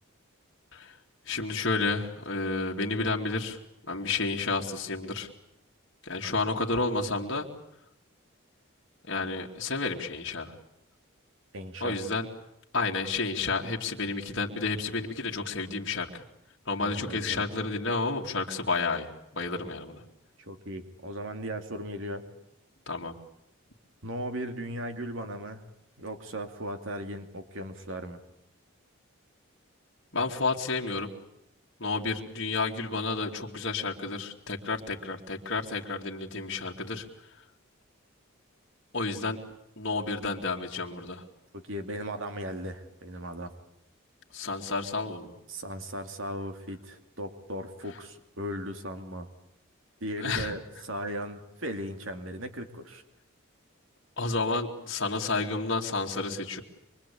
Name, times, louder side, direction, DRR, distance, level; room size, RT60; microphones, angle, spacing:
voice 1, 1.3-3.6 3.9-5.3 6.0-7.5 9.1-10.5 11.8-12.3 12.7-16.2 16.7-20.0 22.9-23.1 30.1-31.1 31.8-37.0 38.9-39.4 39.8-41.2 44.3-45.3 50.2-50.5 54.2-56.6, left 3 dB, 55° left, -1 dB, 2.7 m, -31 dB
voice 2, 11.5-12.0 16.8-17.4 20.4-22.2 24.0-25.6 26.0-28.2 41.5-43.5 45.5-49.3 50.0-53.0, equal, 65° right, 7 dB, 2.7 m, -37 dB
25.0 x 24.0 x 8.6 m, 0.78 s
head